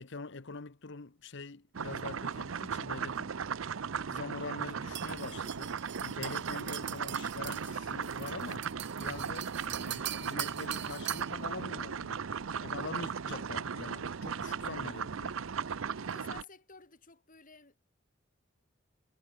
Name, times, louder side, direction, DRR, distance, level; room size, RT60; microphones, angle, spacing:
voice 1, 0.0-3.3 3.9-5.8 6.0-8.7 9.0-12.2 12.6-15.4, left 3 dB, 60° left, 1.0 m, -44 dB
sound 1, 1.7-16.4, right 6 dB, 80° right, 0.6 m, -37 dB
sound 2, 5.0-11.4, right 12 dB, 60° right, 2.6 m, -43 dB
voice 2, 16.0-17.8, left 4 dB, 45° left, 5.8 m, -53 dB
head